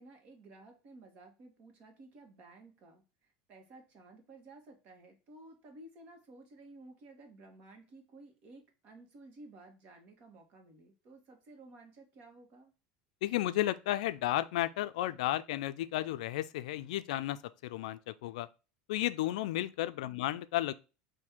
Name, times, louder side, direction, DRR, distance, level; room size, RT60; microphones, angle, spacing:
voice 1, 0.0-12.7 20.0-20.4, right 2 dB, 45° right, 1.3 m, -55 dB
voice 2, 13.2-18.5 18.9-20.7, left 15 dB, 85° left, 0.3 m, -33 dB
4.3 x 2.6 x 3.5 m
supercardioid pair, 140°, 4 cm